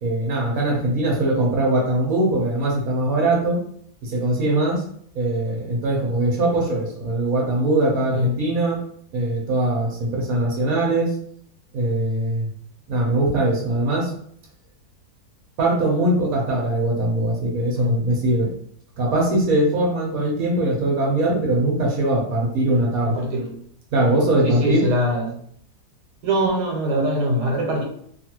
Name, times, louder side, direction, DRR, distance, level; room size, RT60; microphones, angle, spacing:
voice 1, 0.0-3.6 4.0-4.8 5.1-8.8 9.1-11.1 11.7-12.5 12.9-14.1 15.6-18.5 19.0-23.2 23.9-24.9, right 2 dB, 65° right, -2 dB, 1.2 m, -21 dB
voice 2, 23.0-23.5 24.4-25.4 26.2-27.8, equal, 90° right, -1 dB, 1.4 m, -22 dB
3.0 x 2.4 x 2.9 m, 0.64 s
omnidirectional pair, 1.7 m